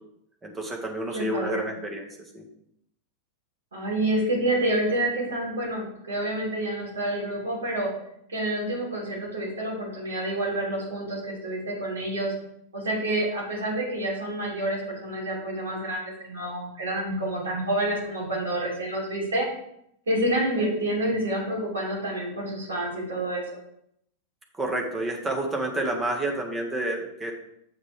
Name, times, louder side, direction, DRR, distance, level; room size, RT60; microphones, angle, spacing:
voice 1, 0.4-2.1 2.3-2.4 24.5-27.3, right 1 dB, 15° right, 1 dB, 1.8 m, -29 dB
voice 2, 1.1-1.7 3.7-7.9 8.3-12.3 12.7-19.5 20.1-23.4, right 1 dB, 70° right, -3 dB, 3.4 m, -28 dB
7.4 x 7.1 x 3.5 m, 0.75 s
figure-of-eight pair, 90°, 0 cm